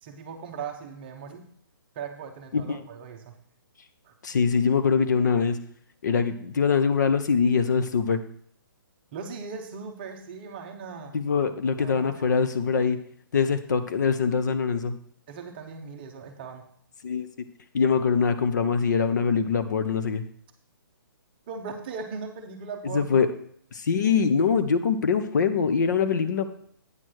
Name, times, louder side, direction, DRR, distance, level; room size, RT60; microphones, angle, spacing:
voice 1, 0.0-1.5 1.9-3.4 4.0-4.1 9.1-11.1 11.8-12.4 15.3-16.6 21.5-23.3, right 5 dB, 25° right, 4 dB, 0.8 m, -38 dB
voice 2, 4.2-5.6 6.0-8.2 11.1-13.0 13.3-14.9 17.0-17.3 17.7-20.2 22.9-23.3 23.7-26.5, left 6 dB, 50° left, 10 dB, 0.7 m, -23 dB
8.7 x 4.5 x 6.3 m, 0.63 s
hypercardioid pair, 165°, 12 cm